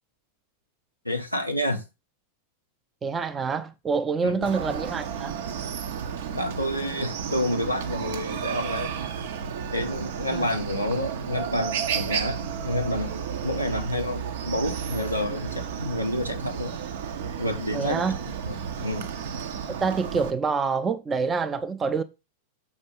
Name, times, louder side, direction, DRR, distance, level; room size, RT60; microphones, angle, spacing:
voice 1, 1.0-1.8 4.2-4.5 6.3-8.9 9.7-16.7 17.4-18.0 18.4-19.1, left 1 dB, 90° right, 1.3 m, -29 dB
voice 2, 3.0-5.4 10.3-10.5 17.7-18.2 19.8-22.0, right 5 dB, 20° right, 0.7 m, -26 dB
Chicken rooster, 4.4-20.3, right 7 dB, 55° right, 0.8 m, -32 dB
7.1 x 5.2 x 5.4 m
figure-of-eight pair, 90°, 0 cm